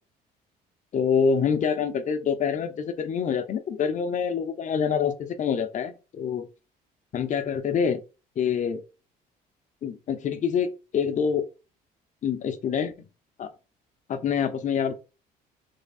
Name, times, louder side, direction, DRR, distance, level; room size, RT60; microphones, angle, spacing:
voice 1, 0.9-6.5 7.1-8.0 8.4-8.8 9.8-11.4 12.2-13.1 13.4-13.5 14.1-14.9, left 7 dB, 45° left, 0.8 m, -26 dB
3.5 x 3.2 x 4.1 m
cardioid pair, 110°, 17 cm